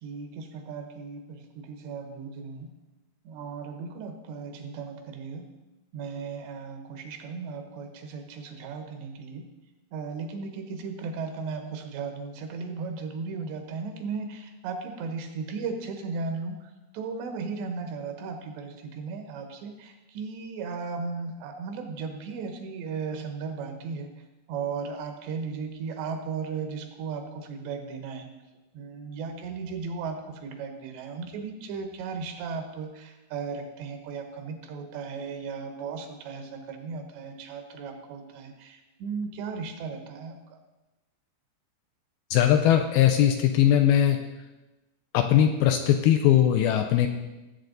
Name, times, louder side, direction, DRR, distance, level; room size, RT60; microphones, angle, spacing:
voice 1, 0.0-2.7 3.2-5.5 5.9-9.5 9.9-24.1 24.5-28.3 28.7-40.6, right 5 dB, 85° right, 5 dB, 3.4 m, -36 dB
voice 2, 42.3-44.2 45.1-47.1, left 10 dB, 80° left, 6 dB, 2.3 m, -20 dB
17.5 x 8.0 x 3.9 m, 1.1 s
omnidirectional pair, 4.9 m